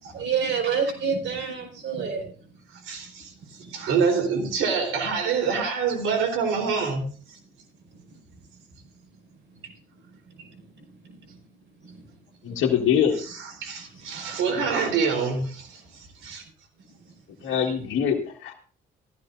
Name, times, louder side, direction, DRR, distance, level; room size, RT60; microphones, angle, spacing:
voice 1, 0.1-2.3 3.6-3.7, right 6 dB, 70° right, 3 dB, 5.0 m, -27 dB
voice 2, 2.7-7.4 13.1-16.4 17.7-17.8, right 5 dB, 90° right, 4 dB, 3.8 m, -27 dB
voice 3, 12.4-13.2 13.6-13.7 17.4-18.5, left 8 dB, 80° left, -2 dB, 1.8 m, -23 dB
15.5 x 14.5 x 2.6 m, 0.42 s
cardioid pair, 90°, 20 cm